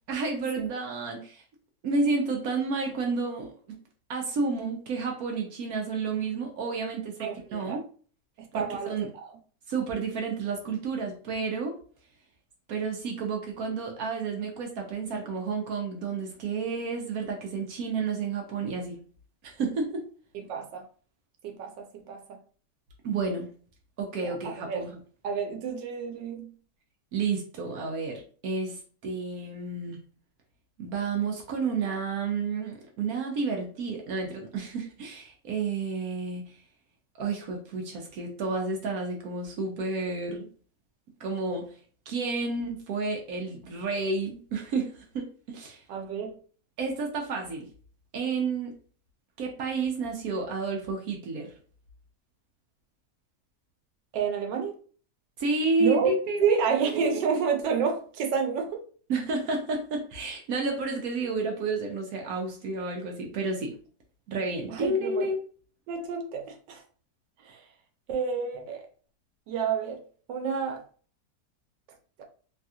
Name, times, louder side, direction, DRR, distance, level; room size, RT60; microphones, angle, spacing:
voice 1, 0.1-1.4 1.8-3.8 4.1-7.8 8.5-9.1 9.7-11.8 12.7-19.0 19.4-20.0 23.0-23.5 24.0-25.0 27.1-30.0 30.8-36.5 37.2-40.5 41.2-41.7 42.1-45.8 46.8-47.7 48.1-48.7 49.4-51.5 55.4-57.3 59.1-63.7 64.3-65.4, right 4 dB, 65° right, 1.0 m, -31 dB
voice 2, 7.2-7.8 8.4-8.9 20.5-20.8 21.4-22.2 24.2-24.8 25.2-26.5 45.9-46.3 54.1-54.7 55.8-56.1 56.4-58.8 64.7-65.3 65.9-66.8 67.4-67.6 68.1-68.8 69.5-70.0 70.3-70.8 72.2-72.3, right 6 dB, 90° right, 1.4 m, -29 dB
3.3 x 2.3 x 2.7 m
omnidirectional pair, 1.9 m